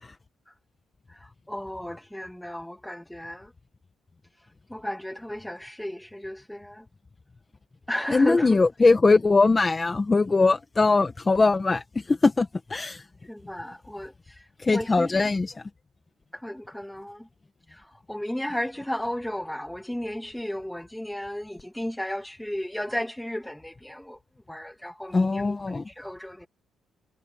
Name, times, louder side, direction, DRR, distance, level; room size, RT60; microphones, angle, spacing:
voice 1, 1.1-3.5 4.7-6.8 7.9-8.6 13.3-14.4 14.7-15.1 16.3-17.3 17.7-24.2 24.5-26.5, left 1 dB, 5° left, 2.9 m, -34 dB
voice 2, 8.1-13.1 14.6-15.7 25.1-25.9, left 3 dB, 25° left, 1.6 m, -21 dB
cardioid pair, 90°, 0 cm